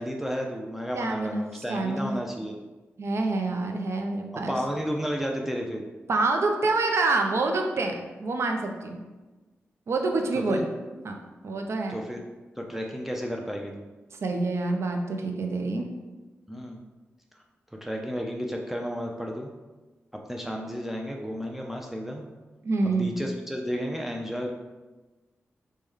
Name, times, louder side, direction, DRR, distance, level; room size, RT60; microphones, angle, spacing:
voice 1, 0.0-2.6 4.3-5.8 10.5-10.6 11.9-12.2 12.6-13.8 16.5-16.8 17.8-19.5 20.3-22.2 22.8-24.5, equal, 5° right, 1 dB, 0.4 m, -32 dB
voice 2, 0.9-2.1 3.0-4.6 6.1-9.0 9.9-10.7 11.0-11.2 11.4-12.0 14.2-15.9 22.6-23.1, right 3 dB, 65° right, 3 dB, 0.4 m, -27 dB
3.2 x 2.1 x 3.5 m, 1.2 s
cardioid pair, 45°, 5 cm